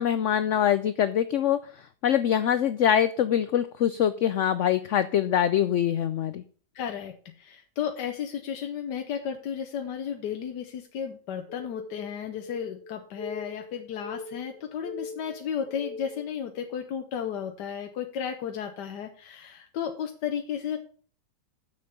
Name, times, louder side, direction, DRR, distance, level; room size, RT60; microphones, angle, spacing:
voice 1, 0.0-6.4, left 10 dB, 70° left, 13 dB, 0.7 m, -24 dB
voice 2, 6.7-20.8, left 8 dB, 85° left, 5 dB, 1.5 m, -33 dB
sound 1, 11.5-16.3, left 4 dB, 45° left, 3.3 m, -41 dB
7.2 x 6.5 x 6.7 m, 0.42 s
omnidirectional pair, 1.8 m